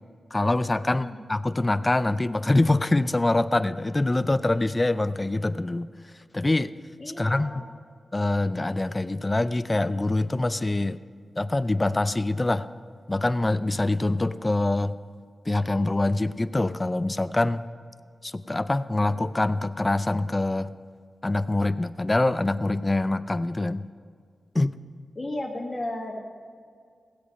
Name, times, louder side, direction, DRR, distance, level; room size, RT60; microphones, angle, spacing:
voice 1, 0.3-5.9 6.3-6.7 7.2-7.5 8.1-11.0 11.4-12.7 13.1-14.9 15.5-17.6 18.2-20.7 21.2-23.8 24.5-24.7, left 2 dB, 25° left, 14 dB, 0.5 m, -24 dB
voice 2, 0.9-1.2 7.0-7.7 25.1-26.2, left 1 dB, 40° left, -1 dB, 1.6 m, -34 dB
16.5 x 8.1 x 5.2 m, 2.1 s
cardioid pair, 65°, 0 cm